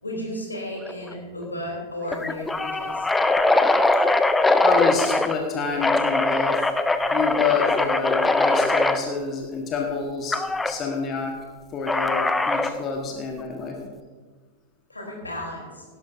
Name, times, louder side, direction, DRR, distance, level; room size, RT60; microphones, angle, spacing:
voice 1, 0.0-3.1 14.9-15.8, left 1 dB, 80° left, -1 dB, 3.6 m, -34 dB
sound 1, 0.9-1.1 1.4-1.5 2.1-5.4 5.8-9.0 10.3-10.7 11.9-12.8, left 2 dB, 10° left, 0.6 m, -21 dB
voice 2, 4.6-6.6 7.1-10.4 10.6-11.3 11.7-13.8, left 5 dB, 30° left, 1 dB, 1.6 m, -28 dB
17.0 x 12.0 x 2.7 m, 1.4 s
figure-of-eight pair, 90°, 0 cm